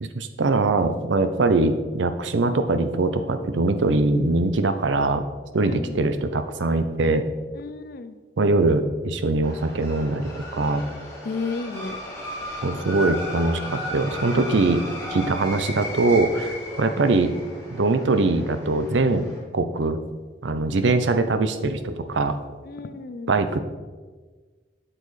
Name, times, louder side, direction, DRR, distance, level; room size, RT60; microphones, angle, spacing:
voice 1, 0.0-5.2 5.5-7.2 8.4-10.8 12.6-14.8 15.1-17.3 17.7-19.3 19.5-20.0 20.4-22.4 23.3-23.6, right 3 dB, 85° right, 10 dB, 0.6 m, -22 dB
voice 2, 5.6-6.1 7.5-8.2 11.2-12.0 22.6-23.5, left 4 dB, 55° left, 11 dB, 0.4 m, -33 dB
sound 1, 9.4-19.4, left 1 dB, 15° left, 2.5 m, -35 dB
8.0 x 7.7 x 3.2 m, 1.4 s
head